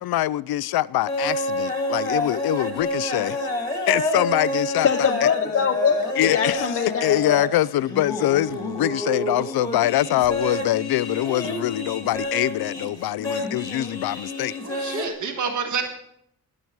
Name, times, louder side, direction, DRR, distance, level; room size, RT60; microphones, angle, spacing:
voice 1, 0.0-3.5 3.9-5.3 6.2-6.7 7.0-14.5 14.9-15.0, left 14 dB, 85° left, 0.5 m, -24 dB
sound 1, 1.1-15.1, left 1 dB, 10° left, 1.9 m, -29 dB
voice 2, 4.8-7.3 11.4-11.5, left 7 dB, 40° left, 0.7 m, -23 dB
voice 3, 14.6-15.8, right 5 dB, 55° right, 1.5 m, -27 dB
13.5 x 11.0 x 4.6 m
wide cardioid pair, 180°, 36 cm